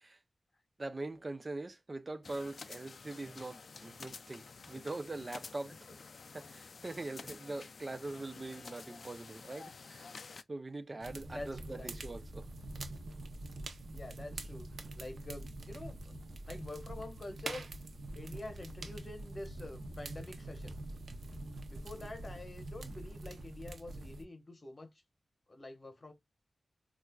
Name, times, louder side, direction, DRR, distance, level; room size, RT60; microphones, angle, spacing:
voice 1, 0.8-5.7 6.3-10.0 10.5-12.5, right 2 dB, 30° right, 0.5 m, -42 dB
sound 1, 2.2-10.4, left 4 dB, 60° left, 0.3 m, -50 dB
voice 2, 11.0-11.9 13.9-16.1 16.4-17.7 18.1-20.8 21.7-24.9 25.5-26.1, left 2 dB, 35° left, 1.1 m, -47 dB
sound 2, 11.0-24.3, right 2 dB, 70° right, 0.6 m, -45 dB
4.2 x 2.4 x 2.2 m
wide cardioid pair, 110°, 0 cm